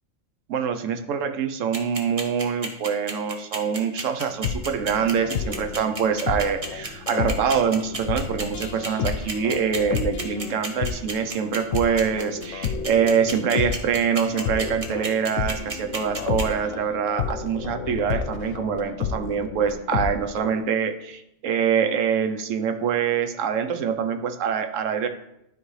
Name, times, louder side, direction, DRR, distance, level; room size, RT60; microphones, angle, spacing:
voice 1, 0.5-25.1, right 7 dB, 75° right, 9 dB, 1.0 m, -25 dB
sound 1, 1.7-16.4, right 3 dB, 30° right, 0.9 m, -31 dB
sound 2, 4.3-20.6, left 6 dB, 75° left, 1.0 m, -31 dB
12.5 x 4.7 x 3.2 m, 0.83 s
omnidirectional pair, 1.3 m